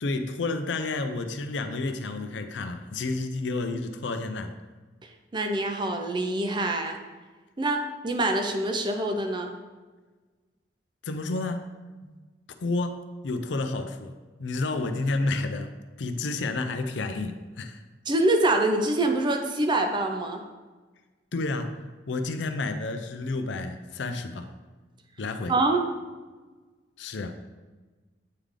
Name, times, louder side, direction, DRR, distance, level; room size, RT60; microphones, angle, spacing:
voice 1, 0.0-4.5 11.0-11.7 12.6-14.1 14.4-15.7 16.0-17.8 21.3-24.5 25.2-25.5 27.0-27.4, left 3 dB, 80° left, 7 dB, 0.5 m, -30 dB
voice 2, 5.3-7.0 7.6-9.5 12.0-12.1 18.1-20.4 25.5-25.8, right 2 dB, 25° right, 4 dB, 0.5 m, -25 dB
8.5 x 3.3 x 3.7 m, 1.3 s
head